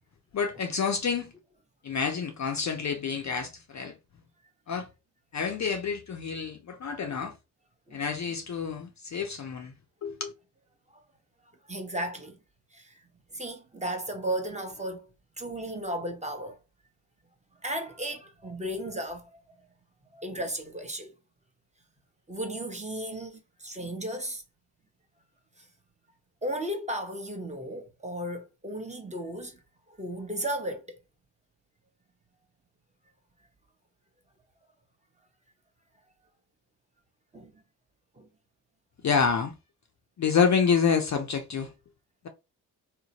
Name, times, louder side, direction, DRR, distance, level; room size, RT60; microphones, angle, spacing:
voice 1, 0.3-1.3 1.8-3.9 4.7-4.9 5.3-7.3 7.9-9.7 10.0-10.3 39.0-39.5 40.2-41.7, left 6 dB, 40° left, 0.5 m, -28 dB
voice 2, 11.7-12.4 12.7-13.0 13.3-15.1 15.4-16.6 17.6-19.5 20.1-21.1 22.3-24.4 25.6-25.7 26.4-29.6 30.0-31.0 37.3-37.5 38.2-38.3, right 1 dB, 15° right, 0.8 m, -35 dB
2.7 x 2.1 x 2.8 m
supercardioid pair, 45°, 48 cm